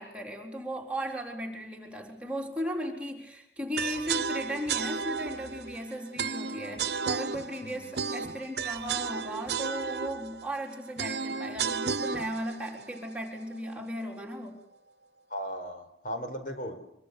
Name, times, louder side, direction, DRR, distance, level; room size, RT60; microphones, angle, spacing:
voice 1, 0.0-14.6, equal, 5° right, 0 dB, 4.0 m, -36 dB
sound 1, 3.8-13.8, right 5 dB, 70° right, 1.0 m, -34 dB
voice 2, 7.6-7.9 15.3-16.8, equal, 50° left, 6 dB, 4.8 m, -37 dB
25.5 x 24.5 x 6.9 m, 0.78 s
head